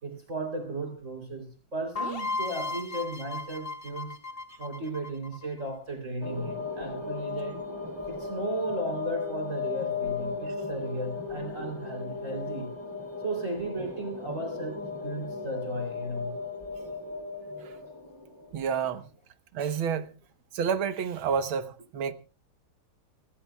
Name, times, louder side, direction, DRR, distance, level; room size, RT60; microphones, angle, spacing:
voice 1, 0.0-4.2 4.6-7.6 8.1-12.7 13.2-16.3, right 2 dB, 35° right, 3.7 m, -35 dB
sound 1, 1.9-5.7, left 3 dB, 30° left, 1.8 m, -35 dB
sound 2, 6.2-18.7, left 4 dB, 10° right, 2.0 m, -36 dB
voice 2, 18.5-19.1 19.5-20.1 20.5-22.1, right 7 dB, 75° right, 1.9 m, -29 dB
28.0 x 13.0 x 2.3 m
omnidirectional pair, 2.3 m